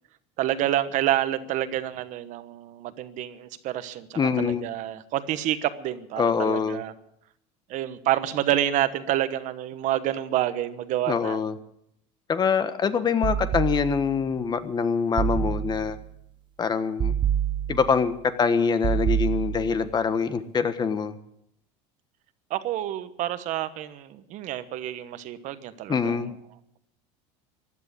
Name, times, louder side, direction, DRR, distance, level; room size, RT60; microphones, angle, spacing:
voice 1, 0.4-6.9 7.7-11.4 22.5-26.3, right 12 dB, 55° right, 12 dB, 1.2 m, -28 dB
voice 2, 4.1-4.6 6.2-6.8 11.1-11.6 12.3-16.0 16.6-17.1 17.7-21.2 25.9-26.3, left 6 dB, 25° left, 11 dB, 1.3 m, -24 dB
sound 1, 13.2-14.2 15.2-16.1 17.0-18.1 18.8-19.9, right 9 dB, 30° right, 0.9 m, -27 dB
15.5 x 11.0 x 8.3 m, 0.76 s
supercardioid pair, 110°, 15 cm